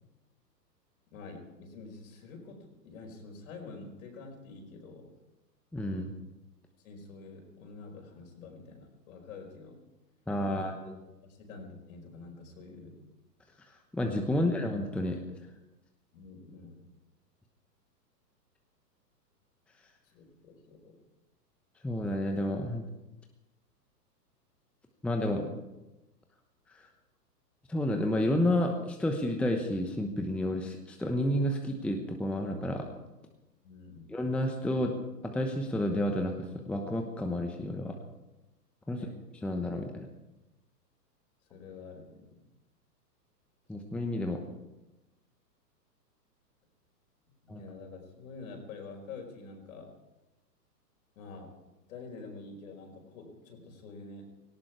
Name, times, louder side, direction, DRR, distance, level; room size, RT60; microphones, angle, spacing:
voice 1, 1.1-5.1 6.8-9.8 10.5-10.8 11.2-13.0 14.3-14.5 16.1-16.9 20.0-21.0 33.6-34.2 38.9-39.2 41.5-42.4 47.4-50.0 51.1-51.6 51.9-54.3, left 4 dB, 55° left, 3 dB, 5.1 m, -47 dB
voice 2, 5.7-6.1 10.3-11.0 13.9-15.2 21.8-22.8 25.0-25.5 27.7-32.9 34.1-34.9 35.3-37.9 38.9-39.0 39.4-40.1 43.7-44.4 47.5-47.6, left 1 dB, ahead, 3 dB, 0.9 m, -30 dB
18.0 x 17.0 x 4.7 m, 1.0 s
hypercardioid pair, 120°, 50 cm